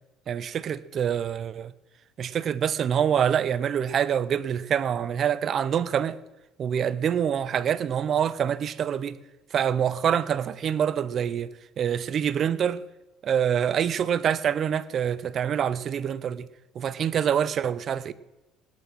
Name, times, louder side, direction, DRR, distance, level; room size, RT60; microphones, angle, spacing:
voice 1, 0.3-1.7 2.2-6.2 6.6-9.2 9.5-11.5 11.8-12.8 13.2-16.5 16.7-18.1, right 8 dB, 40° right, 0.7 m, -26 dB
17.5 x 10.5 x 6.1 m
cardioid pair, 125°, 0 cm